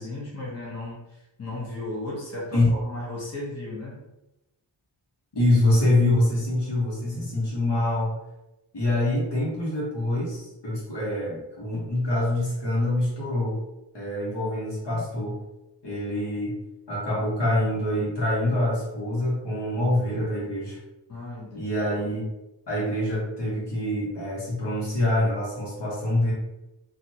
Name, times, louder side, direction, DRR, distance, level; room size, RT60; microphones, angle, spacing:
voice 1, 0.0-4.0 21.1-21.7, left 2 dB, 35° left, -6 dB, 0.9 m, -35 dB
voice 2, 5.3-8.1 8.7-13.6 13.9-15.4 15.8-16.6 16.9-20.8 21.5-22.2 22.7-26.3, left 1 dB, 65° left, -6 dB, 1.3 m, -25 dB
2.8 x 2.6 x 2.8 m, 0.96 s
wide cardioid pair, 80°, 45 cm